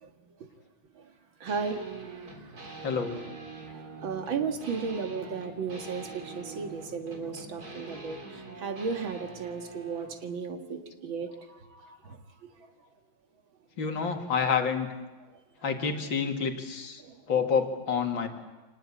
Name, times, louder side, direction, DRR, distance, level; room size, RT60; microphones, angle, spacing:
voice 1, 1.4-1.8 2.1-2.3 2.8-3.0 3.7-12.2 17.0-17.2, right 5 dB, 85° right, 5 dB, 2.6 m, -35 dB
sound 1, 1.5-10.1, right 4 dB, 50° right, 3.9 m, -44 dB
voice 2, 2.8-3.2 13.8-14.9 15.6-17.0 17.3-18.3, left 6 dB, 80° left, 4 dB, 2.8 m, -28 dB
25.5 x 19.5 x 8.5 m, 1.2 s
omnidirectional pair, 2.1 m